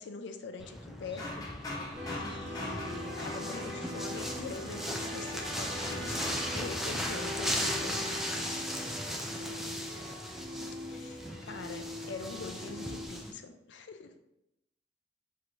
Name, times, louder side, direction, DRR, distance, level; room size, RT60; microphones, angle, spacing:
voice 1, 0.0-1.7 2.1-8.0 10.9-14.1, left 4 dB, 80° left, 7 dB, 0.4 m, -44 dB
sound 1, 0.6-13.3, equal, ahead, 0.4 m, -38 dB
sound 2, 0.8-4.9 5.5-6.7, left 2 dB, 20° left, 0.9 m, -42 dB
sound 3, 2.0-13.1, left 1 dB, 70° right, 1.2 m, -41 dB
voice 2, 8.6-10.2 14.1-14.2, equal, 55° right, 3 dB, 0.5 m, -52 dB
5.5 x 3.1 x 2.6 m, 0.85 s
head